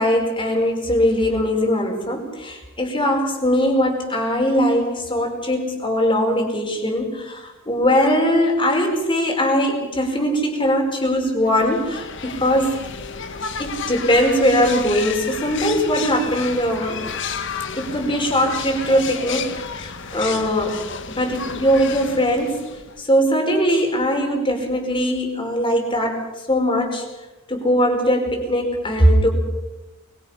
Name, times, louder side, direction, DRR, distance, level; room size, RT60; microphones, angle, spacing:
voice 1, 0.0-12.8 13.6-17.0 17.8-19.5 19.8-20.8 21.1-22.6 23.0-27.0 27.5-29.3, equal, 25° left, 2 dB, 4.8 m, -20 dB
sound 1, 11.4-23.0, left 6 dB, 60° left, 1.5 m, -32 dB
23.0 x 23.0 x 5.8 m, 1.1 s
head